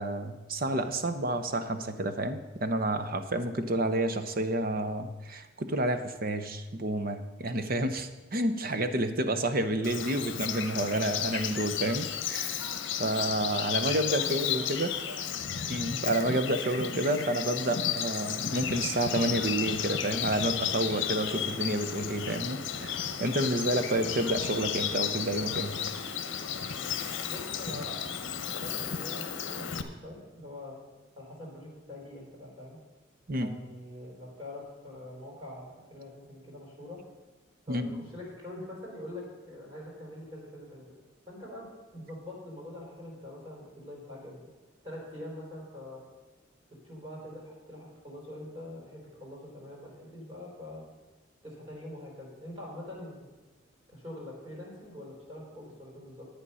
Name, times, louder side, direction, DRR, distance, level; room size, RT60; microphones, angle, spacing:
voice 1, 0.0-12.7 13.0-14.9 15.7-25.7 26.6-26.7 33.3-33.5 37.7-38.0, right 1 dB, 45° right, 8 dB, 0.8 m, -30 dB
Bird vocalization bird call bird song, 9.8-29.8, left 8 dB, 65° left, 0.9 m, -33 dB
voice 2, 14.1-14.6 15.1-15.3 27.2-30.8 31.2-32.8 33.3-37.0 37.6-40.9 41.3-44.4 44.8-46.0 46.8-50.8 51.4-53.3 53.9-56.3, left 1 dB, 25° right, -3 dB, 4.1 m, -44 dB
11.0 x 8.8 x 5.6 m, 1.1 s
head